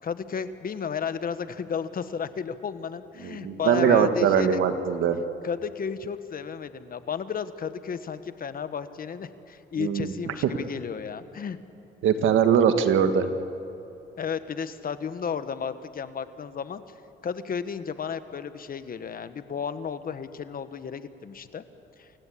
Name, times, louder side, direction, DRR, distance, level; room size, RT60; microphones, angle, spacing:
voice 1, 0.0-4.6 5.4-11.6 14.2-16.8 17.2-21.6 22.0-22.1, left 6 dB, 45° left, 12 dB, 1.3 m, -33 dB
voice 2, 3.2-5.2 9.8-10.1 12.0-13.3, right 7 dB, 80° right, 8 dB, 1.6 m, -21 dB
28.0 x 16.5 x 8.6 m, 2.9 s
cardioid pair, 90°, 20 cm